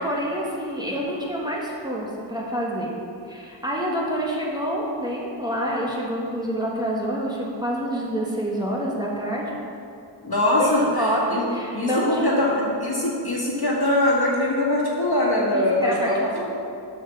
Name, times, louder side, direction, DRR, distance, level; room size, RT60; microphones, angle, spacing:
voice 1, 0.0-2.9 3.2-9.4 10.6-12.5 15.5-16.5, equal, 10° right, -4 dB, 1.5 m, -27 dB
voice 2, 10.2-11.5 11.7-16.2, left 1 dB, 50° left, -5 dB, 2.0 m, -22 dB
7.3 x 5.7 x 7.0 m, 2.6 s
wide cardioid pair, 75°, 47 cm